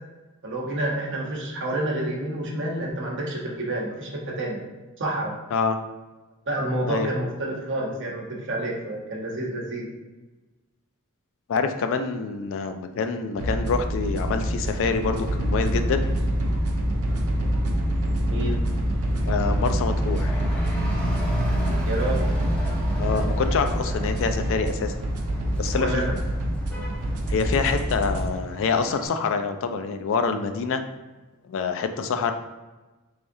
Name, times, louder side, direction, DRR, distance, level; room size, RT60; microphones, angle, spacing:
voice 1, 0.4-4.6 5.0-5.3 6.5-9.9 18.2-18.6 21.8-22.3 25.8-26.1, right 1 dB, 55° right, -2 dB, 0.9 m, -28 dB
voice 2, 11.5-16.0 19.3-20.4 23.0-24.9 25.6-26.0 27.3-30.8 31.5-32.3, left 5 dB, 60° left, 8 dB, 0.4 m, -26 dB
sound 1, 13.4-28.3, equal, 75° right, 0.5 m, -25 dB
Truck / Accelerating revving vroom, 14.6-29.1, equal, 5° left, 0.7 m, -38 dB
3.5 x 3.3 x 2.6 m, 1.2 s
head